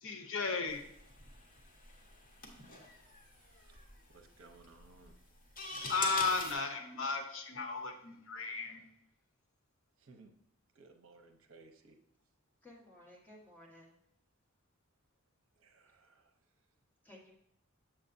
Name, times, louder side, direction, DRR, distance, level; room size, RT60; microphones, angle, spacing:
voice 1, 0.0-0.8 5.9-8.8, left 4 dB, 65° left, 4 dB, 0.8 m, -35 dB
sound 1, 0.7-6.5, left 2 dB, 45° left, 1.3 m, -45 dB
voice 2, 3.5-3.8 4.1-5.2 10.0-10.3 10.8-12.0 15.6-16.3, right 3 dB, 70° right, 6 dB, 0.7 m, -60 dB
voice 3, 12.6-13.9 17.0-17.3, left 1 dB, 10° left, -4 dB, 1.6 m, -56 dB
7.5 x 7.3 x 2.6 m, 0.78 s
head